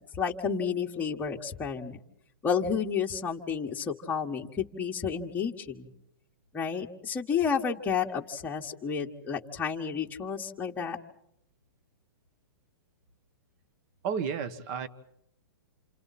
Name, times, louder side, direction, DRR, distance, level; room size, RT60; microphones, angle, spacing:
voice 1, 0.2-2.0 2.4-5.9 6.5-11.0, left 6 dB, 15° left, 0 dB, 1.6 m, -31 dB
voice 2, 14.0-14.9, right 7 dB, 45° right, 13 dB, 1.6 m, -32 dB
28.5 x 28.0 x 4.3 m, 0.78 s
hypercardioid pair, 130°, 12 cm